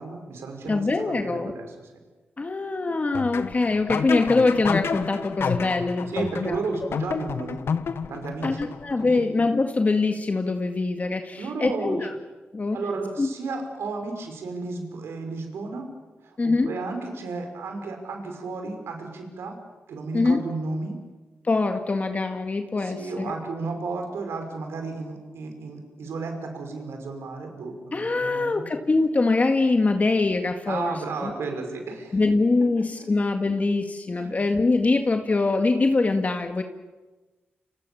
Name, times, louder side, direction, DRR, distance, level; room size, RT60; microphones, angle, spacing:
voice 1, 0.0-1.9 6.1-7.6 8.1-8.7 9.0-9.3 11.3-12.1 12.7-15.9 16.2-19.6 19.9-21.0 22.8-28.7 30.7-32.2 32.8-33.1 34.2-34.4, right 3 dB, 90° right, 4 dB, 5.6 m, -33 dB
voice 2, 0.7-1.5 2.4-6.6 8.4-12.1 12.5-12.8 13.2-13.3 16.4-16.7 20.1-20.4 21.4-23.3 27.9-31.3 32.1-36.6, left 3 dB, 40° left, 5 dB, 1.9 m, -23 dB
sound 1, 3.1-9.1, left 6 dB, 75° left, 1.4 m, -30 dB
30.0 x 27.0 x 7.2 m, 1.2 s
cardioid pair, 70°, 4 cm